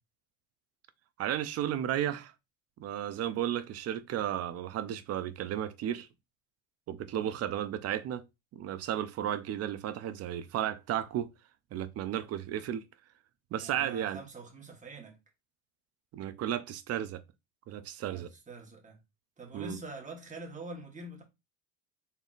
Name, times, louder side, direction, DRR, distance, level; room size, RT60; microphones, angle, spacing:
voice 1, 1.2-2.3 2.8-6.1 6.9-8.2 8.5-11.3 11.7-12.8 13.5-14.2 16.1-17.2 17.7-18.3 19.5-19.8, right 11 dB, 40° right, 0.4 m, -33 dB
voice 2, 13.5-15.2 18.1-19.0 19.4-21.2, right 2 dB, 20° right, 1.1 m, -45 dB
4.0 x 3.4 x 2.4 m
cardioid pair, 120°, 40 cm